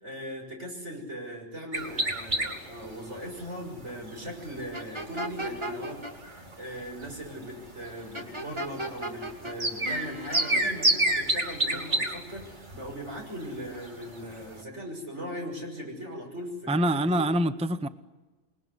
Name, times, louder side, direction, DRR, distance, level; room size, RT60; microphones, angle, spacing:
voice 1, 0.0-6.0 6.6-17.3, equal, 85° right, 7.0 m, -39 dB
sound 1, 1.7-14.6, right 1 dB, 45° right, 2.6 m, -31 dB
sound 2, 4.7-6.1 8.1-9.6 9.8-10.6, right 1 dB, 25° right, 2.6 m, -36 dB
voice 2, 16.7-17.9, right 1 dB, 5° right, 0.7 m, -25 dB
28.0 x 21.0 x 9.7 m
omnidirectional pair, 1.2 m